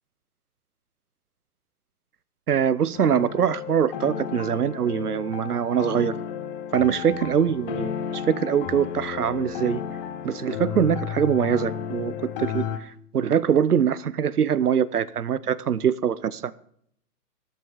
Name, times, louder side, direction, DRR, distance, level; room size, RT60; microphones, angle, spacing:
voice 1, 2.5-6.1 6.7-9.8 10.2-12.1 12.4-16.5, right 8 dB, 75° right, 0.9 m, -23 dB
sound 1, 2.9-12.8, left 9 dB, 35° left, 1.2 m, -33 dB
12.5 x 12.5 x 5.1 m
figure-of-eight pair, 120°, 45 cm